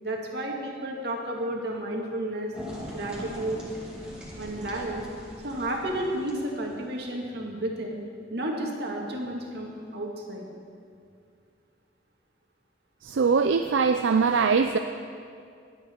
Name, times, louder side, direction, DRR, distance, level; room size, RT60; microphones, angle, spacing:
voice 1, 0.0-2.5 2.9-3.6 4.4-5.0 5.4-8.0 8.3-10.5, right 1 dB, 60° right, 0 dB, 2.1 m, -32 dB
sound 1, 2.5-6.9, equal, 5° right, 2.4 m, -41 dB
voice 2, 13.0-14.8, right 5 dB, 80° right, 7 dB, 0.4 m, -22 dB
20.5 x 8.7 x 4.5 m, 2.3 s
head